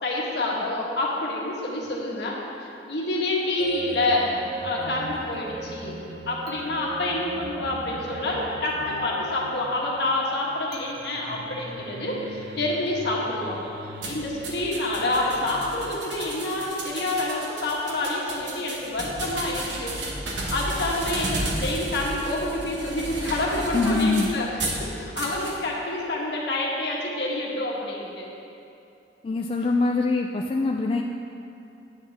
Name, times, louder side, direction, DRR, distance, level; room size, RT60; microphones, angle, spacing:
voice 1, 0.0-4.3 4.6-5.9 6.3-19.9 20.5-24.5 24.9-28.3, left 2 dB, 65° left, -3 dB, 1.5 m, -28 dB
sound 1, 3.6-16.6, right 1 dB, 55° right, 0.6 m, -38 dB
sound 2, 14.0-24.8 25.2-25.6, right 2 dB, 85° right, 1.2 m, -33 dB
voice 2, 23.7-24.4 29.2-31.0, left 3 dB, 30° left, 1 dB, 0.3 m, -23 dB
8.9 x 8.1 x 3.5 m, 2.7 s
head